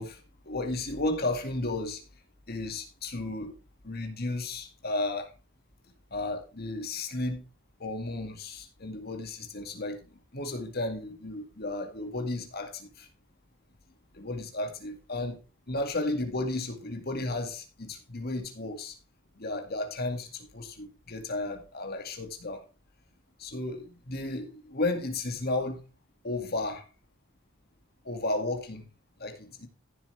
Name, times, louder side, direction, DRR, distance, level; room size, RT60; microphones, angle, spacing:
voice 1, 0.0-2.0 2.5-3.5 3.8-5.3 6.1-7.4 7.8-10.0 10.3-13.1 14.1-15.4 15.7-18.9 19.4-22.6 23.4-25.8 26.2-26.8 28.1-28.9 29.2-29.7, left 2 dB, 50° left, 2.2 m, -33 dB
15.0 x 7.4 x 3.4 m
head